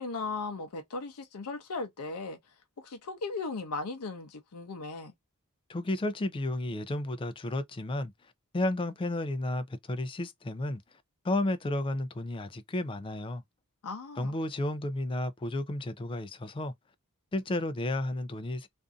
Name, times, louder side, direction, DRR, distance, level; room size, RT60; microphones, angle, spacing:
voice 1, 0.0-2.4 2.8-5.1 13.8-14.3, left 3 dB, 80° left, 0.6 m, -37 dB
voice 2, 5.7-8.1 8.5-10.8 11.2-13.4 14.2-16.7 17.3-18.7, left 1 dB, 25° left, 0.4 m, -32 dB
2.5 x 2.5 x 2.3 m
head